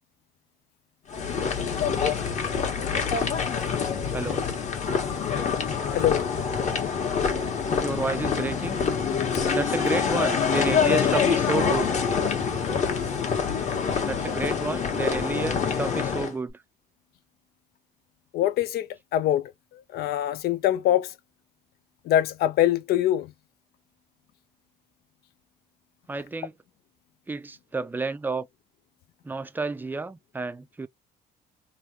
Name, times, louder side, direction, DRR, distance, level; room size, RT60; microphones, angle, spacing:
sound 1, 1.1-16.3, left 6 dB, 45° left, 1.3 m, -26 dB
voice 1, 4.1-4.4 7.8-8.8 9.5-11.9 14.1-16.5 26.1-26.5 27.3-28.5 29.2-30.9, right 3 dB, 10° right, 0.4 m, -30 dB
voice 2, 5.9-6.3 18.3-18.9 19.1-19.5 19.9-21.1 22.1-23.3, left 12 dB, 70° left, 0.5 m, -23 dB
3.3 x 2.3 x 2.7 m
cardioid pair, 110°, 17 cm